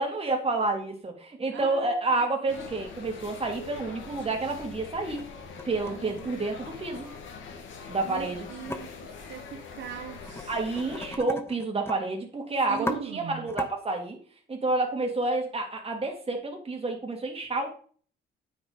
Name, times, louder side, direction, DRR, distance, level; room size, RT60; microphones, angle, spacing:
voice 1, 0.0-5.2 5.6-7.1 7.9-8.4 10.5-14.2 14.5-17.8, right 3 dB, 30° right, 3.0 m, -29 dB
voice 2, 0.6-0.9 1.5-2.3 5.9-6.4 8.0-10.6 12.7-13.5, right 8 dB, 65° right, 1.1 m, -41 dB
sound 1, 2.5-11.2, left 5 dB, 75° left, 2.0 m, -43 dB
sound 2, 4.9-5.2 5.6-7.0 8.7-8.8 10.2-10.4 10.7-12.0 12.3-12.4 12.7-13.0 13.5-13.7, left 2 dB, 10° left, 1.3 m, -37 dB
9.2 x 5.6 x 5.1 m
cardioid pair, 90°, 20 cm